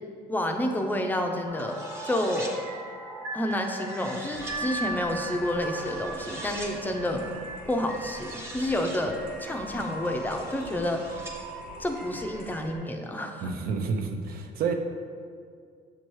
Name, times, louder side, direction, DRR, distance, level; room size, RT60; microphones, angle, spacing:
voice 1, 0.3-2.5 3.3-7.3 7.7-11.1 11.8-13.5, left 1 dB, 10° left, 3 dB, 0.5 m, -29 dB
sound 1, 1.5-12.8, right 2 dB, 80° right, 1.4 m, -39 dB
sound 2, 1.6-2.6 3.5-4.6 5.8-6.7 7.9-9.0 9.8-11.4, right 1 dB, 15° right, 0.9 m, -43 dB
sound 3, 4.3-12.7, right 1 dB, 35° right, 1.2 m, -48 dB
voice 2, 13.4-14.7, right 5 dB, 65° right, 5 dB, 0.6 m, -29 dB
7.1 x 3.0 x 4.6 m, 2.1 s
cardioid pair, 110°, 17 cm